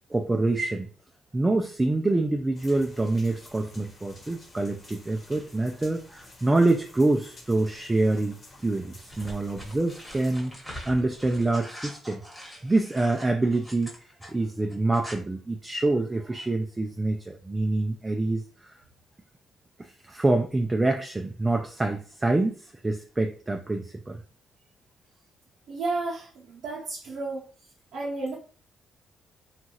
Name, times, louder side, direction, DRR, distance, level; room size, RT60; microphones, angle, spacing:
voice 1, 0.1-0.9 1.3-12.4 12.6-13.9 14.3-18.8 19.8-24.2, right 2 dB, 15° right, 3 dB, 0.3 m, -26 dB
sound 1, 2.5-10.3, left 2 dB, 45° left, 1.1 m, -51 dB
sound 2, 9.1-14.3 14.7-15.1, equal, 5° left, 1.1 m, -43 dB
voice 2, 25.7-27.5 27.9-28.4, right 3 dB, 75° right, -6 dB, 0.7 m, -32 dB
2.8 x 2.3 x 2.9 m, 0.41 s
cardioid pair, 90°, 0 cm